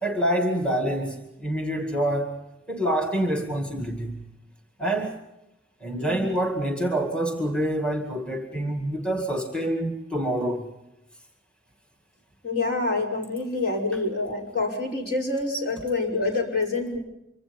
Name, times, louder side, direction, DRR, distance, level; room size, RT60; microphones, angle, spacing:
voice 1, 0.0-2.4 2.7-4.2 4.8-5.2 5.8-10.6, right 1 dB, 5° left, 2.2 m, -26 dB
voice 2, 12.4-17.0, left 3 dB, 55° left, 5.5 m, -27 dB
26.0 x 24.0 x 5.4 m
head